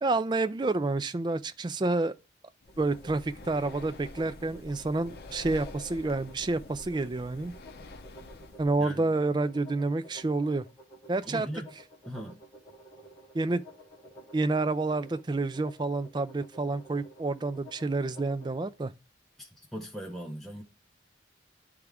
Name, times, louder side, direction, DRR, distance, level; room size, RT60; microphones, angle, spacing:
voice 1, 0.0-2.1 2.8-7.5 8.6-10.7 11.1-11.5 13.3-13.6 14.3-18.9, right 3 dB, 25° right, 0.3 m, -29 dB
Breathing, 2.6-8.7, left 2 dB, 55° left, 0.7 m, -47 dB
sound 1, 2.7-18.7, right 1 dB, 20° left, 3.3 m, -52 dB
voice 2, 8.8-9.1 11.2-11.7 12.1-12.4 19.4-20.6, equal, ahead, 0.8 m, -39 dB
10.5 x 3.6 x 3.4 m
head